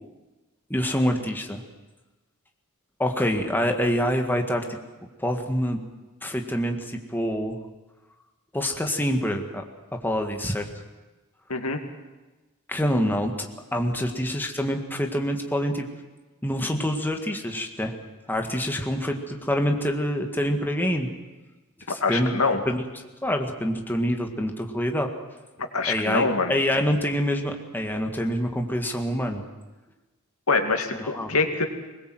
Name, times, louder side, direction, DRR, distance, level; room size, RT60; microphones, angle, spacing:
voice 1, 0.7-1.6 3.0-4.6 5.2-5.8 6.2-7.6 8.5-9.6 10.0-10.7 12.7-15.9 16.4-18.0 18.3-21.1 21.9-22.8 23.2-25.1 25.9-29.4 30.9-31.3, equal, 10° left, 3 dB, 1.9 m, -26 dB
voice 2, 11.5-11.8 21.9-22.6 25.7-26.5 30.5-31.7, left 4 dB, 90° left, 5 dB, 2.4 m, -24 dB
22.5 x 20.5 x 7.8 m, 1.1 s
head